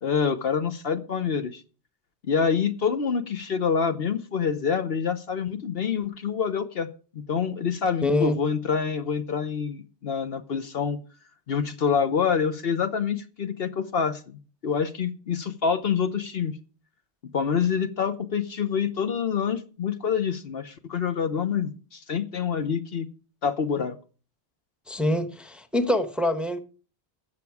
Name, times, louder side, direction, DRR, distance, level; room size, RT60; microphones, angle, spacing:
voice 1, 0.0-1.6 2.3-6.9 7.1-11.0 11.5-16.6 17.3-23.1 23.4-24.0, left 6 dB, 65° left, 1.0 m, -26 dB
voice 2, 8.0-8.4 24.9-26.6, left 1 dB, ahead, 1.0 m, -25 dB
17.5 x 7.0 x 4.8 m
omnidirectional pair, 1.1 m